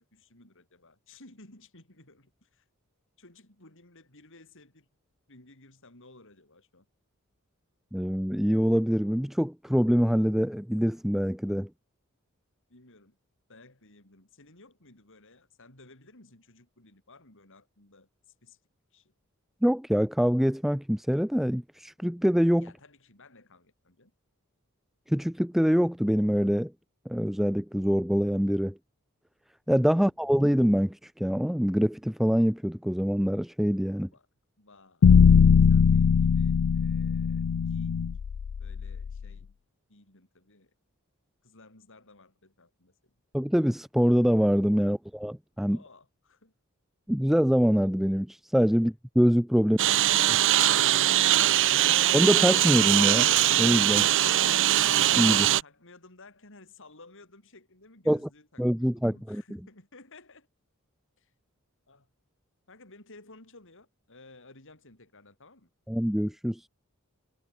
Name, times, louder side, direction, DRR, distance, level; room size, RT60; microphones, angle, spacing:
voice 1, 0.0-2.7 3.2-4.9 5.3-6.9 12.7-13.2 13.5-18.6 18.9-19.1 22.6-24.1 34.0-34.3 34.6-35.1 35.7-38.1 38.6-39.6 39.9-40.7 41.4-43.1 45.7-46.5 48.7-48.8 55.6-60.5 61.2-61.3 61.9-62.1 62.7-65.7, left 2 dB, 60° left, 6.6 m, -55 dB
voice 2, 7.9-11.7 19.6-22.7 25.1-26.7 27.1-28.7 29.7-34.1 43.3-45.8 47.1-49.8 50.3-50.4 52.1-53.3 53.6-54.1 55.1-55.5 58.1-58.2 58.6-59.4 65.9-66.7, equal, ahead, 0.5 m, -24 dB
sound 1, 35.0-39.2, left 6 dB, 85° left, 0.4 m, -21 dB
Engine, 49.8-55.6, right 12 dB, 60° right, 0.6 m, -22 dB
head